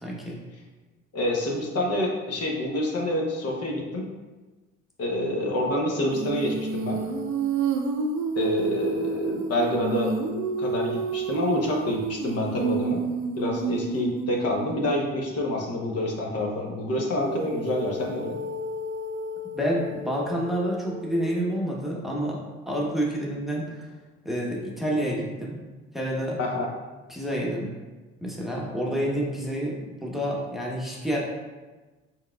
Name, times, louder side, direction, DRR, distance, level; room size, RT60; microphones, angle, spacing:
voice 1, 0.0-0.4 19.5-22.4 22.7-23.9 24.2-25.6 25.9-26.4 27.1-27.7 28.2-31.2, equal, ahead, -3 dB, 0.9 m, -28 dB
voice 2, 1.1-4.0 5.0-7.0 8.4-10.1 10.6-13.0 13.4-18.4 26.4-26.7, left 1 dB, 50° left, -1 dB, 0.9 m, -27 dB
Female singing, 6.1-15.0 17.2-21.4, right 4 dB, 65° right, 0.6 m, -30 dB
4.6 x 3.5 x 2.3 m, 1.2 s
supercardioid pair, 75°, 31 cm